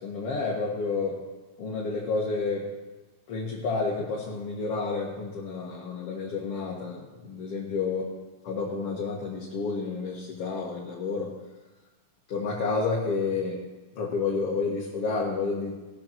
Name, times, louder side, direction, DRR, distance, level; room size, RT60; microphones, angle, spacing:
voice 1, 0.0-1.2 1.6-2.7 3.3-8.0 8.4-11.3 12.3-13.6 14.0-15.7, left 4 dB, 50° left, -4 dB, 2.3 m, -30 dB
19.5 x 7.0 x 6.7 m, 1.2 s
omnidirectional pair, 3.9 m